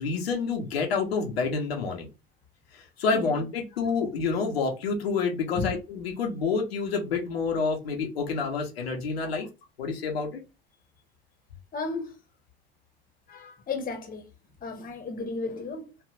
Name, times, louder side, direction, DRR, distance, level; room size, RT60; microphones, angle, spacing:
voice 1, 0.0-2.1 2.7-9.5 9.8-10.4, left 4 dB, 85° left, 0.9 m, -28 dB
voice 2, 11.7-12.2 13.3-14.3 14.6-15.9, left 4 dB, 30° left, 1.1 m, -34 dB
3.3 x 2.5 x 2.4 m
hypercardioid pair, 85°, 30 cm